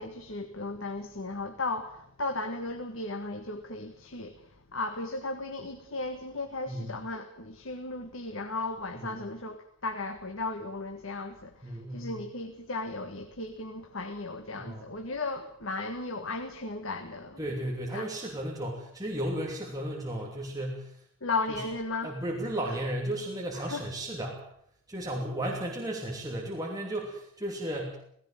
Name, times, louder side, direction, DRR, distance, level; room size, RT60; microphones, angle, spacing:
voice 1, 0.0-17.4 17.9-18.1 21.2-22.2 23.5-23.8, left 3 dB, 70° left, 1.7 m, -36 dB
voice 2, 11.6-12.2 14.6-14.9 17.4-21.0 21.5-21.6 22.0-24.4 24.9-28.0, right 1 dB, 15° right, 2.9 m, -34 dB
17.5 x 17.0 x 9.0 m
head